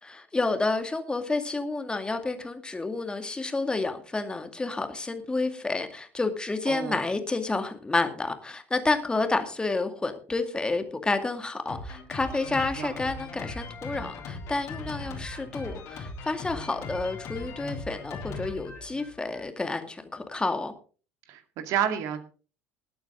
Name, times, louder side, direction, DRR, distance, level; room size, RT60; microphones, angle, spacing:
voice 1, 0.0-20.7, left 3 dB, 15° left, 2.2 m, -30 dB
voice 2, 6.7-7.0 12.8-13.0 21.3-22.2, right 9 dB, 50° right, 2.1 m, -29 dB
Drum kit, 11.7-19.5, left 3 dB, 45° left, 3.7 m, -39 dB
20.0 x 8.7 x 3.7 m
figure-of-eight pair, 65°, 7 cm